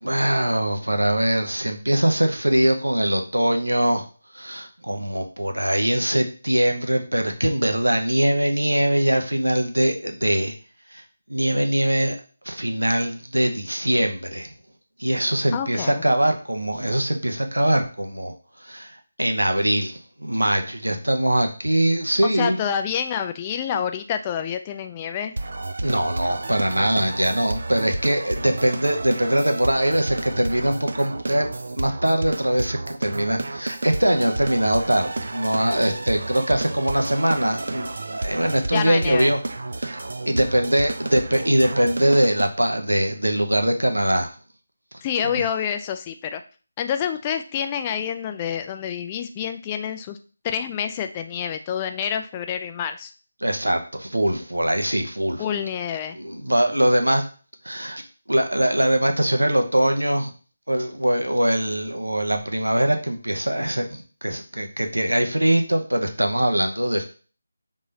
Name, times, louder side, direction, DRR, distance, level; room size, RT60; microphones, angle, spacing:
voice 1, 0.0-4.0 4.3-10.5 10.9-11.0 11.3-12.2 12.5-14.5 15.0-18.3 18.6-22.6 25.8-39.4 39.8-40.0 40.3-44.3 45.2-45.5 53.4-55.4 56.1-57.3 57.6-58.0 58.3-60.3 60.7-67.0, right 1 dB, 90° right, 5 dB, 0.8 m, -22 dB
voice 2, 15.5-15.9 22.2-25.3 38.7-39.3 45.0-46.4 46.8-50.2 50.4-53.1 55.4-56.2, left 8 dB, 20° left, 8 dB, 0.3 m, -27 dB
sound 1, 25.4-42.5, right 2 dB, 60° right, 0.4 m, -31 dB
3.6 x 3.2 x 4.0 m, 0.38 s
figure-of-eight pair, 160°, 0 cm